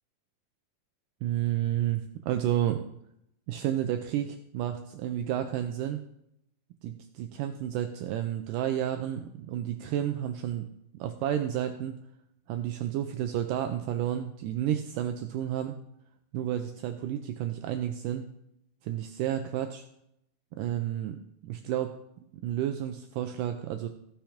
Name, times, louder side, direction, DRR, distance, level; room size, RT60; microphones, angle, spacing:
voice 1, 1.2-2.8 3.5-6.0 6.8-10.7 10.9-12.0 12.5-15.8 16.3-18.3 18.8-19.8 20.6-22.0 22.3-23.9, right 11 dB, 80° right, 7 dB, 2.0 m, -31 dB
15.0 x 6.0 x 5.0 m, 0.78 s
omnidirectional pair, 4.2 m